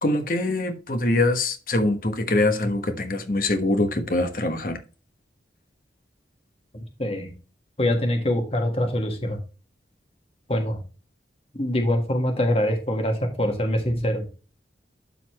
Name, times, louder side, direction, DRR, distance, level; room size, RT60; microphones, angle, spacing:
voice 1, 0.0-4.8, left 2 dB, 50° left, 1.3 m, -23 dB
voice 2, 6.7-7.3 7.8-9.4 10.5-10.8 11.5-14.3, left 1 dB, 35° left, 1.5 m, -24 dB
12.0 x 4.2 x 3.0 m
head